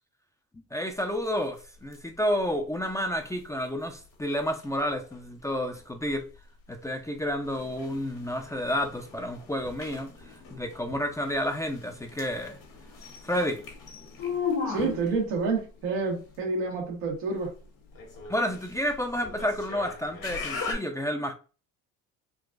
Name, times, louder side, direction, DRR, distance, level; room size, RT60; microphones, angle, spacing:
voice 1, 0.7-6.3 6.7-12.6 13.2-13.6 18.3-21.3, equal, 10° left, 0.4 m, -30 dB
sound 1, 0.9-20.7, left 4 dB, 60° left, 1.3 m, -44 dB
sound 2, 7.4-15.3 18.3-18.4, left 6 dB, 85° left, 1.1 m, -38 dB
voice 2, 14.7-17.5, right 4 dB, 90° right, 1.3 m, -29 dB
3.8 x 2.5 x 2.4 m
supercardioid pair, 75°, 37 cm